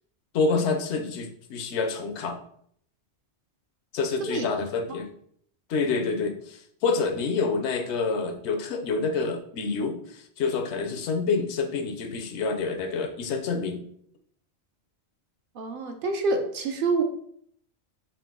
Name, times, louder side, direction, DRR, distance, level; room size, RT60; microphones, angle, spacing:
voice 1, 0.3-2.4 3.9-5.1 5.7-13.8, left 4 dB, 85° left, 7 dB, 0.9 m, -27 dB
voice 2, 15.6-17.0, right 3 dB, 60° right, 4 dB, 0.7 m, -27 dB
3.8 x 2.8 x 3.6 m, 0.65 s
omnidirectional pair, 1.1 m